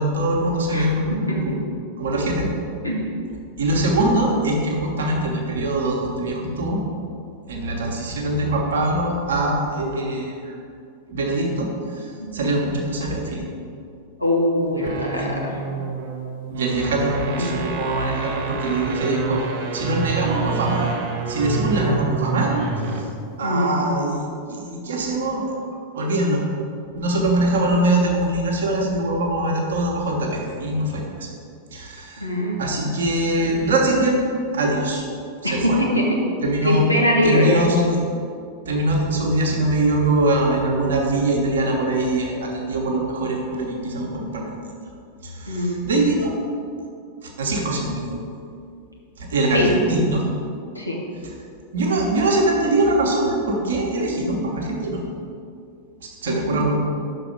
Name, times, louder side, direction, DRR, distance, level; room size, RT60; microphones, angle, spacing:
voice 1, 0.0-1.5 2.0-2.5 3.6-6.8 7.5-10.6 11.1-11.7 11.9-12.0 12.3-13.4 15.1-15.3 16.5-19.4 19.7-21.0 21.3-22.6 23.4-25.6 25.9-26.4 26.9-31.3 31.7-32.3 32.6-34.2 34.5-35.0 35.4-35.8 36.4-36.9 37.2-38.0 38.7-44.6 45.2-46.3 47.4-48.2 49.2-50.2 51.7-55.0 56.2-56.7, right 1 dB, 65° right, -1 dB, 1.1 m, -22 dB
voice 2, 0.7-1.6 2.8-3.0 12.2-12.3 14.2-15.6 17.3-17.6 23.4-23.8 32.2-32.6 35.4-36.2 36.6-37.7 45.5-45.8 49.5-49.7 50.7-51.0 56.3-56.6, equal, 90° left, -3 dB, 1.1 m, -22 dB
sound 1, 14.7-23.2, right 6 dB, 45° right, 0.7 m, -29 dB
5.9 x 4.1 x 5.2 m, 2.4 s
figure-of-eight pair, 90°, 0 cm